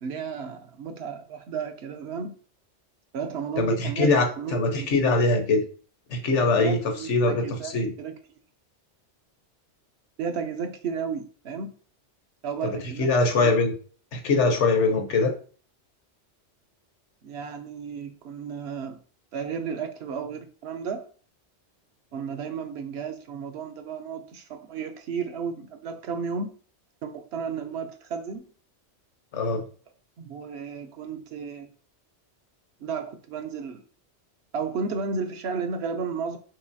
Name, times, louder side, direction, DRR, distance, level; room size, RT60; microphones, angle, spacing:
voice 1, 0.0-2.4 3.1-4.1 4.4-4.9 6.6-7.7 8.0-8.2 10.2-11.7 12.4-13.1 13.4-13.6 17.2-19.0 19.3-21.1 22.1-26.5 27.0-28.4 30.2-31.7 32.8-33.8 34.5-36.4, right 6 dB, 70° right, 6 dB, 0.9 m, -33 dB
voice 2, 3.6-5.6 6.1-6.8 7.1-7.9 12.6-13.7 14.1-15.3 29.3-29.6, left 3 dB, 85° left, 5 dB, 1.2 m, -22 dB
5.5 x 3.1 x 2.7 m, 0.41 s
omnidirectional pair, 1.2 m